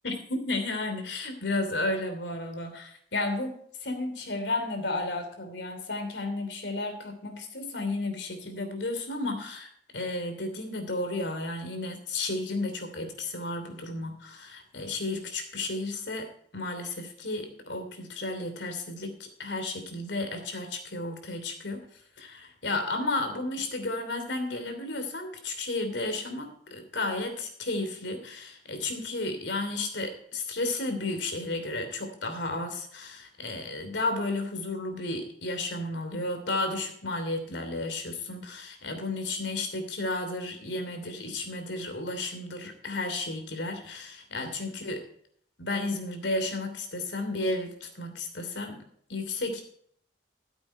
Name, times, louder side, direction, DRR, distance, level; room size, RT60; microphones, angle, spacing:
voice 1, 0.0-19.1 19.4-21.8 22.2-45.0 45.6-49.6, left 2 dB, 85° left, 6 dB, 3.0 m, -33 dB
14.0 x 8.1 x 4.3 m, 0.63 s
head